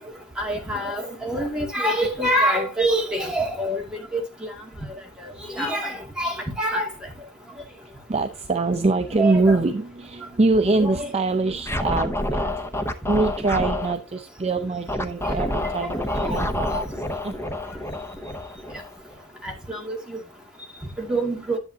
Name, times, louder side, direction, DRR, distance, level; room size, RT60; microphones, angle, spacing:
voice 1, 0.4-4.2 5.2-6.9 9.2-9.6 10.6-11.1 16.3-16.4 16.7-16.8 19.4-20.2 21.0-21.6, right 1 dB, 5° right, 2.2 m, -26 dB
voice 2, 8.1-16.8 17.1-17.3, right 3 dB, 30° right, 0.5 m, -24 dB
Scratching (performance technique), 11.6-13.9 14.9-19.2, left 1 dB, 10° left, 0.7 m, -28 dB
10.5 x 7.6 x 2.7 m
head